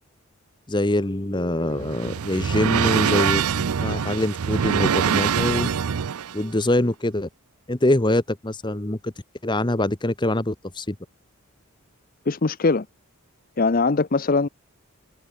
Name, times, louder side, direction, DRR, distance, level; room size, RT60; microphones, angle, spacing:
voice 1, 0.7-5.7 6.3-7.3 7.7-9.1 9.4-11.0, left 1 dB, 20° left, 1.1 m, -24 dB
sound 1, 1.4-6.4, right 7 dB, 85° right, 0.5 m, -24 dB
voice 2, 12.3-12.9 13.6-14.5, left 3 dB, 40° left, 0.6 m, -21 dB
head